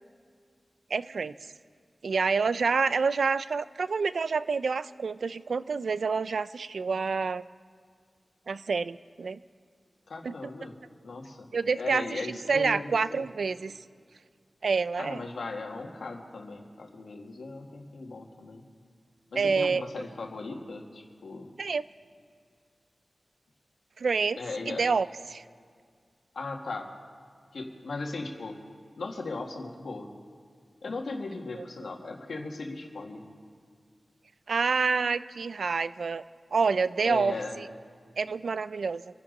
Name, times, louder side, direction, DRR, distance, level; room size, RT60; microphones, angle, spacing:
voice 1, 0.9-1.3 2.0-7.4 8.5-9.4 10.2-10.3 11.5-13.7 14.6-15.2 19.4-19.8 21.6-21.9 24.0-24.4 24.7-25.4 31.6-31.7 34.5-36.2 36.5-37.7 38.2-39.0, right 4 dB, 75° right, 15 dB, 0.4 m, -28 dB
voice 2, 10.1-10.8 11.0-11.5 11.7-13.3 15.0-18.6 19.3-21.5 24.4-24.9 26.3-26.9 27.5-28.6 29.0-30.1 30.8-33.2 37.0-37.6, left 3 dB, 85° left, 1 dB, 1.8 m, -37 dB
26.5 x 10.5 x 3.9 m, 2.1 s
wide cardioid pair, 110°, 0 cm